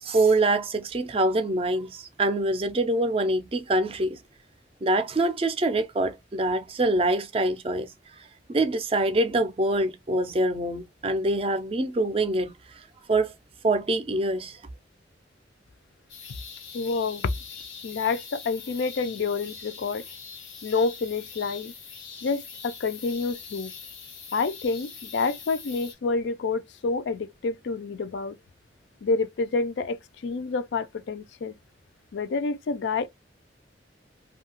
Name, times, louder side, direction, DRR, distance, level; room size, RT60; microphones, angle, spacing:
voice 1, 0.0-4.2 4.8-7.9 8.5-13.3 13.6-14.6, right 2 dB, 30° right, 0.4 m, -25 dB
sound 1, 16.1-25.9, left 6 dB, 90° left, 1.2 m, -43 dB
voice 2, 16.7-17.4 17.8-20.0 20.6-21.7 22.2-23.7 24.3-28.4 29.0-31.6 32.1-33.1, left 4 dB, 70° left, 0.4 m, -28 dB
2.7 x 2.3 x 2.8 m
head